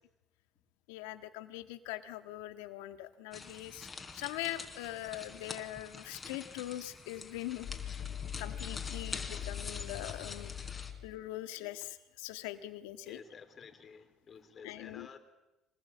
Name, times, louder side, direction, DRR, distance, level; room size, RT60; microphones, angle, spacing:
voice 1, 0.9-3.9 4.1-7.7 8.4-10.5 11.0-13.2 14.6-15.1, left 15 dB, 90° left, 10 dB, 1.7 m, -42 dB
sound 1, 3.3-10.9, left 4 dB, 30° left, 4.2 m, -46 dB
sound 2, 6.3-6.4 7.5-11.2, left 9 dB, 65° left, 1.5 m, -42 dB
voice 2, 7.8-8.2 13.1-15.2, left 6 dB, 45° left, 9 dB, 3.7 m, -52 dB
25.5 x 20.0 x 8.7 m, 0.96 s
supercardioid pair, 80°, 0 cm